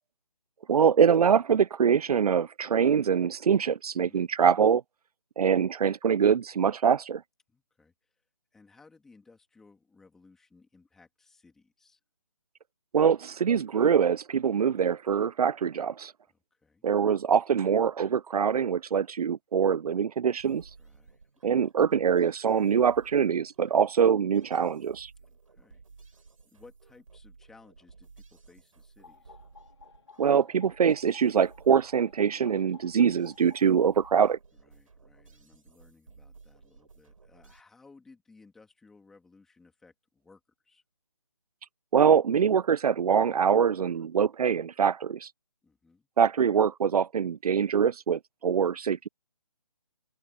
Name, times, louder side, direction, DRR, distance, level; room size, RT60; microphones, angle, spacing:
voice 1, 0.7-4.8 5.4-7.2 12.9-16.1 16.8-20.6 21.4-25.1 30.2-34.4 41.9-45.3 46.2-49.1, right 7 dB, 80° right, 0.4 m, -24 dB
voice 2, 7.5-8.2 8.5-12.0 16.3-16.9 20.8-21.6 25.2-29.4 34.5-40.8 45.6-46.1, left 4 dB, ahead, 2.3 m, -59 dB
sound 1, 20.3-37.6, right 4 dB, 65° right, 7.2 m, -56 dB
sound 2, 29.0-34.2, left 5 dB, 50° left, 3.3 m, -55 dB
hypercardioid pair, 175°, 19 cm